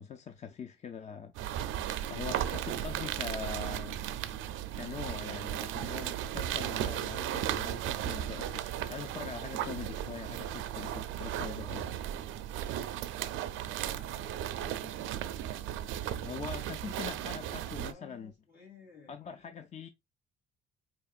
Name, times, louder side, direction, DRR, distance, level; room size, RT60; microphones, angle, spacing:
voice 1, 0.0-4.0 4.5-12.0 16.2-18.3 19.1-19.9, left 6 dB, 35° left, 0.4 m, -43 dB
sound 1, 1.3-17.9, right 11 dB, 85° right, 0.4 m, -36 dB
voice 2, 11.3-12.0 13.8-15.0 17.8-19.2, left 5 dB, 60° left, 2.6 m, -55 dB
4.6 x 2.9 x 2.4 m
cardioid pair, 90°, 20 cm